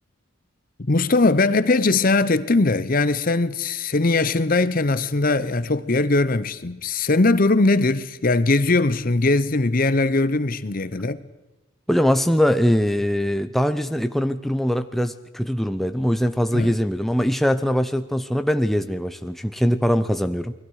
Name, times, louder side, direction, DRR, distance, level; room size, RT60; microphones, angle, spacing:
voice 1, 0.8-11.2 16.5-16.7, left 3 dB, 40° left, 0.7 m, -20 dB
voice 2, 11.9-20.5, equal, ahead, 0.6 m, -22 dB
29.0 x 21.0 x 4.8 m
head